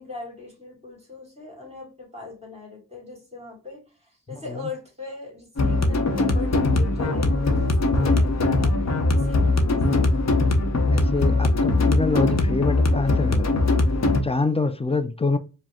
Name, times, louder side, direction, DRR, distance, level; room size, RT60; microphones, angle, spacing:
voice 1, 0.0-10.1, left 3 dB, 20° right, 2.3 m, -40 dB
voice 2, 4.3-4.6 10.9-13.6 14.2-15.4, left 3 dB, 20° left, 0.3 m, -26 dB
sound 1, 5.6-14.2, left 2 dB, 50° left, 0.8 m, -21 dB
4.9 x 2.1 x 3.5 m
wide cardioid pair, 110°, 35 cm